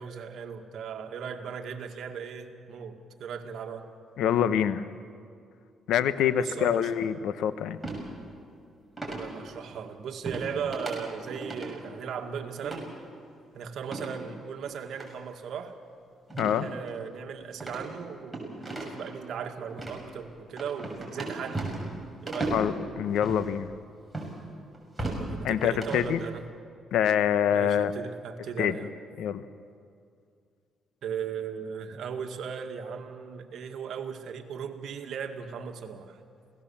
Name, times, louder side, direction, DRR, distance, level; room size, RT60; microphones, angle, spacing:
voice 1, 0.0-3.8 6.4-6.9 9.1-12.9 13.5-15.7 16.4-21.8 22.2-22.6 25.0-26.4 27.5-29.0 31.0-36.2, right 7 dB, 70° right, 4 dB, 2.0 m, -37 dB
voice 2, 4.2-4.9 5.9-7.8 16.4-16.7 22.5-23.7 25.4-26.2 26.9-27.9 28.6-28.8 29.2-29.4, left 9 dB, 85° left, 13 dB, 1.0 m, -25 dB
sound 1, 7.8-8.0 9.0-9.3 10.3-10.5 10.7-10.9 11.3-11.7 12.6-12.8 13.8-14.2 14.9-15.1 16.3-16.6 16.9-17.0 17.6-19.1 19.7-20.0 20.6-21.9 22.3-22.6 23.2-23.4 24.1-24.3 24.7-25.2 25.6-26.1, right 2 dB, 5° right, 6.7 m, -35 dB
28.0 x 18.5 x 7.3 m, 2.3 s
cardioid pair, 90°, 0 cm